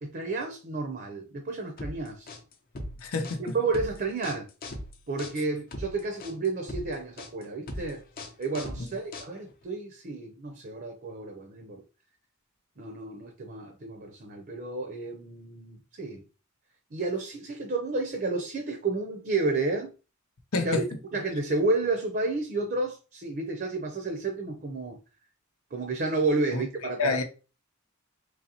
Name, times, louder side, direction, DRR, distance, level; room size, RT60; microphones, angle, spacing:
voice 1, 0.0-2.3 3.5-4.5 5.1-8.0 8.4-11.8 12.8-16.2 16.9-19.9 20.6-20.8 21.1-25.0 25.7-27.2, right 3 dB, 45° right, 0.6 m, -31 dB
sound 1, 1.8-9.6, left 1 dB, 45° left, 0.7 m, -39 dB
voice 2, 3.0-3.6 8.8-8.9 20.5-20.9 26.5-26.6 27.0-27.2, left 3 dB, 90° left, 0.8 m, -28 dB
3.9 x 3.0 x 2.8 m
head